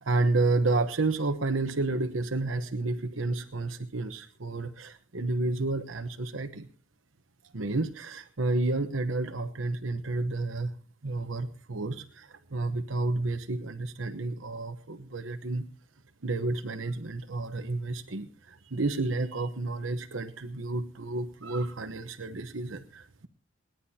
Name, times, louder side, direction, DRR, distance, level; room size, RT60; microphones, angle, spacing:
voice 1, 0.0-6.7 7.5-10.7 11.0-15.6 16.2-23.3, right 2 dB, 80° right, 7 dB, 1.1 m, -30 dB
28.5 x 10.5 x 2.8 m, 0.39 s
head